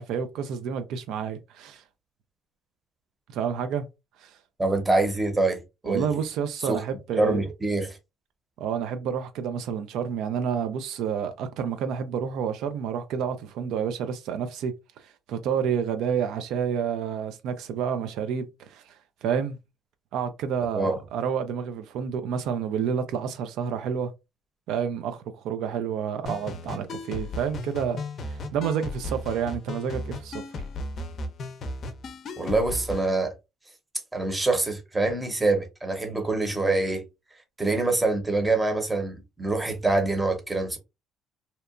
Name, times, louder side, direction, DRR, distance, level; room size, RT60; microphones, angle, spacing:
voice 1, 0.0-1.8 3.3-3.9 4.2-4.4 5.8-7.4 8.6-19.6 20.1-24.1 24.7-30.4, right 7 dB, 80° right, 0.3 m, -29 dB
voice 2, 4.6-6.1 6.6-6.8 7.1-8.0 20.7-21.0 32.4-33.3 34.1-37.0 37.6-40.8, right 2 dB, 15° right, 0.7 m, -25 dB
sound 1, 26.2-33.1, left 1 dB, 50° left, 0.5 m, -35 dB
2.8 x 2.2 x 2.4 m
cardioid pair, 110°, 0 cm